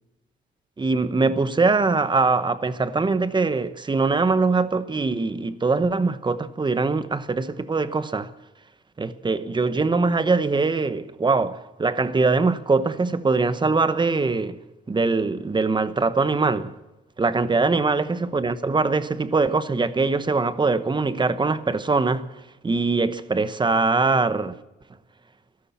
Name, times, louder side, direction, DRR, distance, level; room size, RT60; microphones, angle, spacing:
voice 1, 0.8-8.3 9.0-14.6 14.9-16.7 17.2-22.3 22.6-24.5, right 3 dB, 25° right, 1.0 m, -22 dB
14.0 x 12.5 x 7.2 m
cardioid pair, 90°, 20 cm